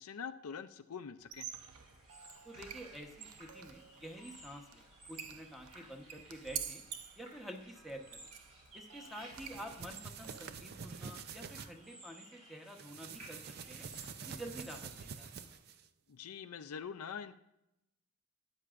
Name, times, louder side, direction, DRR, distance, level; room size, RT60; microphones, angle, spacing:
voice 1, 0.0-1.5 16.1-17.4, left 6 dB, 75° left, 10 dB, 0.5 m, -44 dB
Squeak, 1.2-10.8, right 8 dB, 85° right, 0.7 m, -49 dB
sound 1, 1.5-15.5, right 1 dB, 30° right, 4.1 m, -58 dB
voice 2, 2.4-6.8 7.2-8.3 8.7-13.4 13.7-13.9 14.2-15.4, equal, ahead, 3 dB, 1.0 m, -49 dB
sound 2, 9.2-11.7 12.7-15.9, right 6 dB, 45° right, 0.5 m, -47 dB
13.0 x 9.7 x 2.5 m, 0.85 s
head